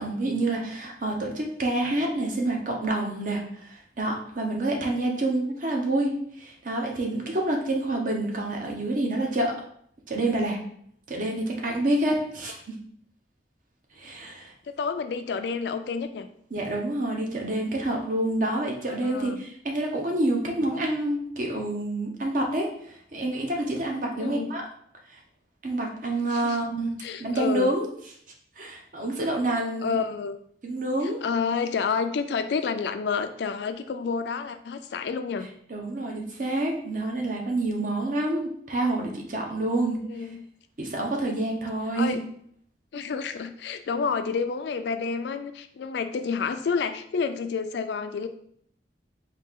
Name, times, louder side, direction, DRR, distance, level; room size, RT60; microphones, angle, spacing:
voice 1, 0.0-9.5 10.1-10.6 11.1-12.6 14.0-14.5 16.5-24.7 25.6-27.9 28.6-30.0 30.6-31.2 35.7-40.0 40.8-42.2, right 1 dB, 50° right, 1 dB, 0.7 m, -28 dB
voice 2, 14.7-16.3 19.0-19.4 24.1-24.5 26.2-26.7 27.0-27.7 29.8-30.4 31.0-35.5 40.0-40.5 42.0-42.2 42.9-48.3, left 5 dB, 70° left, 9 dB, 0.3 m, -29 dB
4.1 x 2.4 x 3.5 m, 0.65 s
head